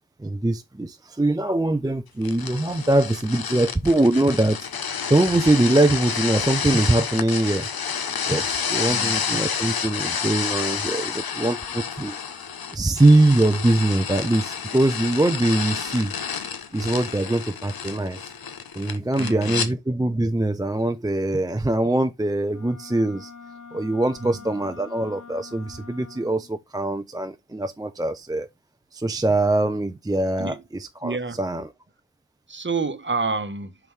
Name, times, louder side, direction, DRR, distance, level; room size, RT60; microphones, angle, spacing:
voice 1, 0.2-4.7 5.1-7.7 8.3-16.1 16.7-18.3 18.7-23.3 23.7-28.5 28.9-31.7, right 2 dB, 10° right, 0.5 m, -22 dB
sound 1, 2.2-19.7, left 7 dB, 90° left, 0.9 m, -29 dB
voice 2, 8.8-9.3 19.2-19.7 24.2-24.4 30.4-30.6 31.0-31.4 32.5-33.8, right 4 dB, 30° right, 1.0 m, -29 dB
Wind instrument woodwind instrument, 22.5-26.5, left 5 dB, 55° left, 1.4 m, -44 dB
5.9 x 5.3 x 3.2 m
wide cardioid pair, 70°, 35 cm